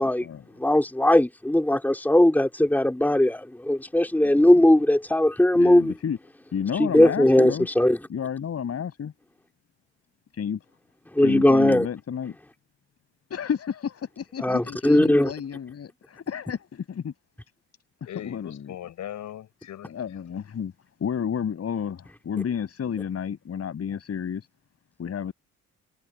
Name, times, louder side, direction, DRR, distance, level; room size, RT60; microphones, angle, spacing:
voice 1, 0.6-5.9 6.8-8.0 11.2-11.9 14.4-15.3, left 1 dB, 5° left, 3.2 m, -19 dB
voice 2, 4.3-4.7 5.5-6.2 6.5-7.7 8.1-9.1 10.4-10.6 11.2-12.4 13.3-17.1 18.2-18.8 19.9-20.7 21.0-24.4 25.0-25.3, left 7 dB, 55° left, 7.1 m, -31 dB
voice 3, 18.1-19.9, left 11 dB, 75° left, 5.9 m, -39 dB
cardioid pair, 90°, 30 cm